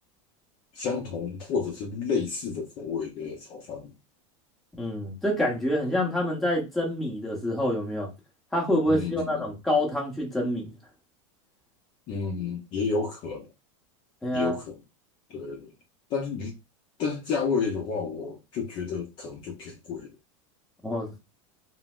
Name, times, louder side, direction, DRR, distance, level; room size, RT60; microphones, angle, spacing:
voice 1, 0.7-3.9 8.9-9.5 12.1-13.5 14.3-14.8 15.3-15.7 16.1-16.5 17.0-20.2, left 5 dB, 30° left, 0.5 m, -31 dB
voice 2, 4.8-8.1 8.5-10.7 14.2-14.6 20.8-21.1, left 1 dB, ahead, 0.8 m, -27 dB
3.8 x 2.0 x 2.4 m
supercardioid pair, 170°, 17 cm